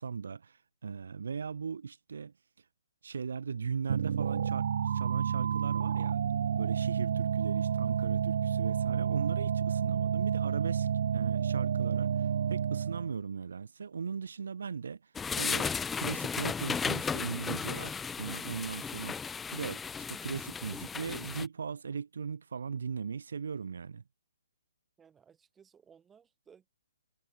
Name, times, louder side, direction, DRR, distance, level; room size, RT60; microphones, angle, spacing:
voice 1, 0.0-2.3 3.0-6.2 6.5-10.9 11.1-19.2 19.5-19.8 20.1-24.0, right 6 dB, 75° right, 1.4 m, -38 dB
sound 1, 3.9-13.1, right 8 dB, 60° right, 0.4 m, -30 dB
sound 2, 15.2-21.5, left 6 dB, 10° left, 0.4 m, -35 dB
voice 2, 25.0-26.7, right 7 dB, 10° right, 5.0 m, -60 dB
hypercardioid pair, 150°, 0 cm